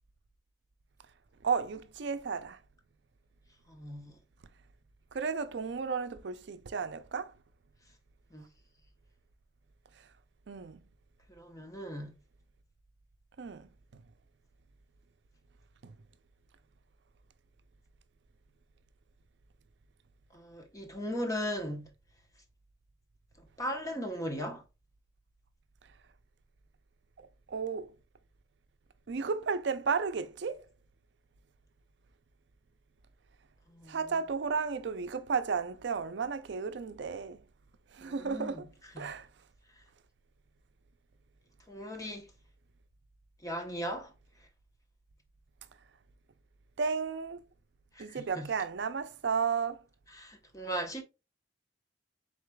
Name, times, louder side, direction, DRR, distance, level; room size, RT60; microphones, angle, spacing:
voice 1, 1.4-2.6 5.1-7.3 10.5-10.8 13.4-13.7 15.8-15.9 27.2-27.9 29.1-30.7 33.9-37.4 37.9-38.7 39.0-39.3 46.8-47.4 48.0-49.8, right 5 dB, 65° right, 0.5 m, -33 dB
voice 2, 3.7-4.1 8.3-8.4 11.4-12.1 20.3-21.9 23.6-24.6 33.7-34.0 38.0-38.6 38.9-39.1 41.7-42.3 43.4-44.1 48.0-48.5 50.2-51.0, equal, 20° left, 0.8 m, -37 dB
4.8 x 3.9 x 2.2 m
head